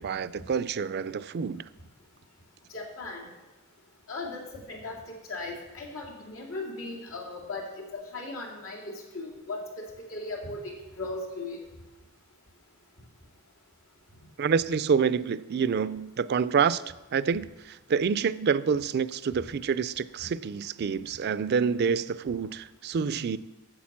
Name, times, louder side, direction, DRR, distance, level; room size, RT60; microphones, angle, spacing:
voice 1, 0.0-1.6 14.4-16.8 17.1-23.4, right 6 dB, 50° right, 15 dB, 0.4 m, -27 dB
voice 2, 2.7-3.3 4.1-5.0 5.3-9.8 10.1-11.6, left 2 dB, 90° left, -1 dB, 2.5 m, -37 dB
8.7 x 7.8 x 7.3 m, 1.1 s
head